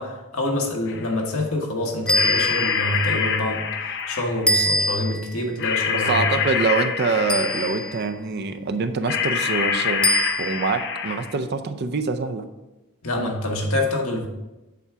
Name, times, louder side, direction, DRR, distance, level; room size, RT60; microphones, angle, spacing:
voice 1, 0.0-6.4 13.0-14.3, left 1 dB, 80° left, 1 dB, 1.4 m, -26 dB
sound 1, 0.9-1.1 2.1-4.5 5.6-8.0 9.1-11.4, left 6 dB, 55° left, 0.6 m, -26 dB
sound 2, 2.1-3.0 4.5-5.3 7.3-8.0 10.0-10.7, equal, 5° left, 0.3 m, -23 dB
voice 2, 5.9-10.1 10.4-12.4, right 4 dB, 50° right, 9 dB, 0.5 m, -25 dB
8.3 x 3.6 x 5.7 m, 1.1 s
head